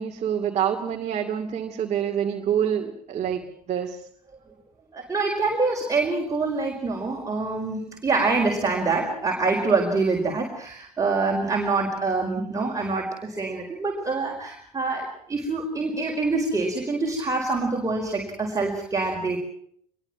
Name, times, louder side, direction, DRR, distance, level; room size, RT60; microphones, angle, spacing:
voice 1, 0.0-4.0, right 9 dB, 35° right, 2 dB, 2.5 m, -27 dB
voice 2, 4.9-19.4, right 3 dB, 15° right, -1 dB, 4.8 m, -25 dB
24.5 x 22.0 x 6.0 m, 0.65 s
figure-of-eight pair, 65°, 19 cm